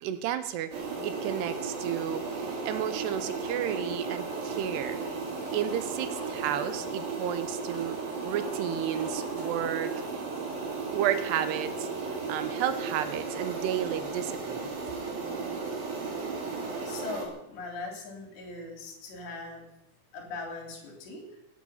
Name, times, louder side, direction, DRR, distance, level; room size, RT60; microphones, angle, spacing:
voice 1, 0.0-5.0 5.5-8.0 8.2-9.9 10.9-14.6, right 10 dB, 80° right, 11 dB, 2.9 m, -32 dB
sound 1, 0.7-17.3, right 4 dB, 60° right, 4.6 m, -35 dB
voice 2, 16.9-19.7 20.1-21.4, left 3 dB, 80° left, 2 dB, 5.3 m, -40 dB
18.0 x 9.2 x 7.1 m, 0.85 s
omnidirectional pair, 4.9 m